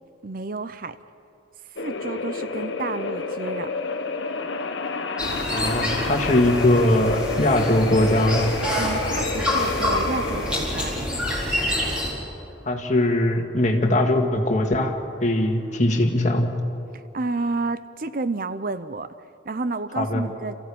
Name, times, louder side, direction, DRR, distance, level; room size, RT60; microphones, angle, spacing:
voice 1, 0.2-1.0 1.8-3.7 8.7-10.9 16.9-19.1 19.4-20.6, right 3 dB, 45° right, 13 dB, 0.6 m, -30 dB
sound 1, 1.8-16.3, left 3 dB, 70° left, 1.2 m, -31 dB
sound 2, 5.2-12.1, left 1 dB, 5° right, 4.5 m, -27 dB
voice 2, 5.5-8.5 12.6-16.5 20.0-20.3, left 1 dB, 40° left, 3 dB, 1.9 m, -21 dB
27.0 x 15.5 x 8.6 m, 2.6 s
head